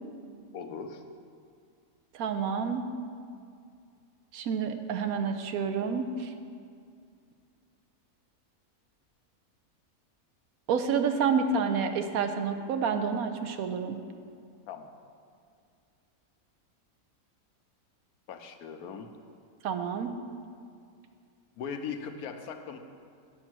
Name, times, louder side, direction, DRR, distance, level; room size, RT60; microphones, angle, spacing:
voice 1, 0.5-1.0 14.7-14.9 18.3-19.1 21.6-22.8, left 6 dB, 90° left, 7 dB, 1.2 m, -39 dB
voice 2, 2.1-2.8 4.3-6.3 10.7-14.0 19.6-20.1, right 6 dB, 75° right, 7 dB, 1.1 m, -29 dB
8.9 x 6.2 x 6.0 m, 2.3 s
omnidirectional pair, 1.6 m